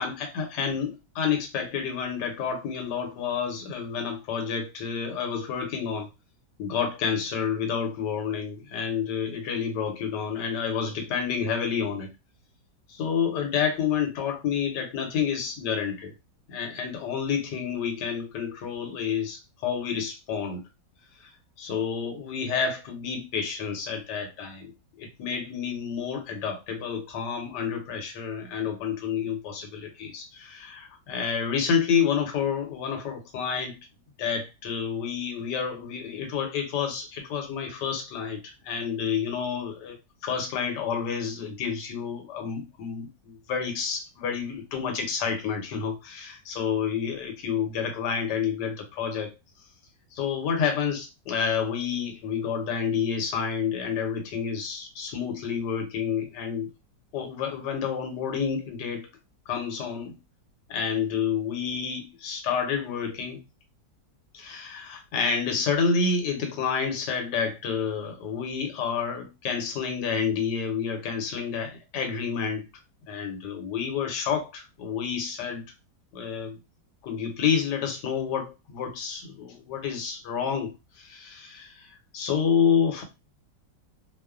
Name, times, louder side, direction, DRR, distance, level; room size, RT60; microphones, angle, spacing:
voice 1, 0.0-6.1 6.6-12.1 12.9-16.1 16.5-20.6 21.2-21.3 21.6-24.7 25.0-33.8 34.2-40.0 40.2-49.3 50.1-56.7 57.1-59.1 59.5-60.2 60.7-63.4 64.3-72.7 73.1-75.6 76.1-76.6 77.0-81.9 82.1-83.0, left 6 dB, 75° left, 1.3 m, -29 dB
3.0 x 2.0 x 2.3 m
omnidirectional pair, 1.9 m